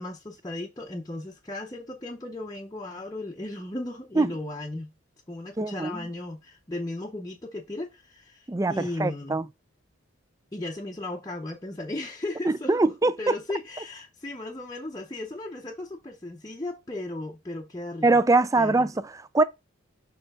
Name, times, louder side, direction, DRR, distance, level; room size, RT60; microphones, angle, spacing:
voice 1, 0.0-4.9 5.3-9.4 10.5-18.1 18.6-18.8, left 2 dB, 15° left, 0.7 m, -36 dB
voice 2, 5.6-6.1 8.5-9.5 12.4-13.3 18.0-19.4, right 2 dB, 15° right, 0.3 m, -23 dB
6.8 x 3.3 x 5.4 m
head